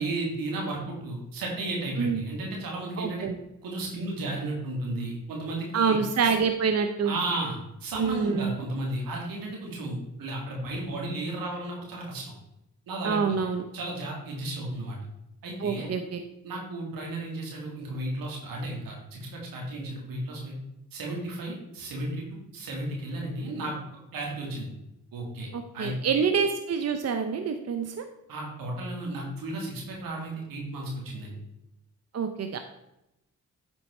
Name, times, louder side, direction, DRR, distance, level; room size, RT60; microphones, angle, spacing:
voice 1, 0.0-3.3 3.6-6.0 6.2-6.3 7.0-12.3 12.9-13.2 13.7-15.0 15.4-15.9 16.4-20.5 20.9-23.7 24.1-24.7 25.1-25.5 25.7-26.2 28.3-31.3, right 2 dB, 80° right, -1 dB, 2.3 m, -34 dB
voice 2, 3.0-3.4 5.7-7.1 8.0-8.5 13.0-13.6 15.6-16.2 25.5-28.0 32.1-32.6, right 6 dB, 45° right, 7 dB, 0.7 m, -26 dB
8.9 x 4.5 x 4.3 m, 0.88 s
supercardioid pair, 50°, 34 cm